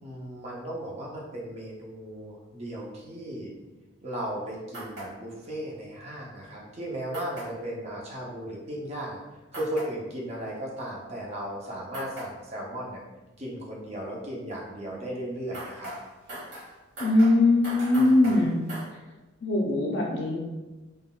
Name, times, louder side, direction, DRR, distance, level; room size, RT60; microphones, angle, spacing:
voice 1, 0.0-3.5 4.0-9.2 9.5-13.0 13.4-15.9 17.9-18.5, right 1 dB, 30° right, -4 dB, 0.6 m, -36 dB
sound 1, 4.7-5.1 7.1-7.5 9.5-9.9 11.9-12.3 15.5-18.9, right 1 dB, 60° right, 1.4 m, -39 dB
voice 2, 17.0-18.6 19.4-20.4, left 2 dB, 60° left, -3 dB, 0.4 m, -21 dB
3.6 x 2.2 x 2.3 m, 1.2 s
head